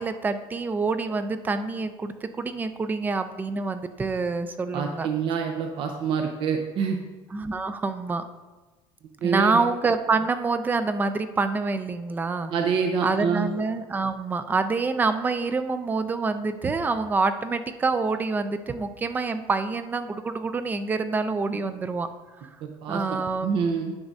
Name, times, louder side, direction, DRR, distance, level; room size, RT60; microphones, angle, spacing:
voice 1, 0.0-5.1 7.3-8.2 9.2-12.5 13.0-22.1 22.9-23.6, right 4 dB, 15° right, 10 dB, 0.4 m, -26 dB
voice 2, 4.7-7.0 9.2-9.6 12.5-13.5 21.5-21.6 22.6-24.0, right 6 dB, 55° right, 4 dB, 0.7 m, -26 dB
9.6 x 6.0 x 2.7 m, 1.2 s
cardioid pair, 150°, 11 cm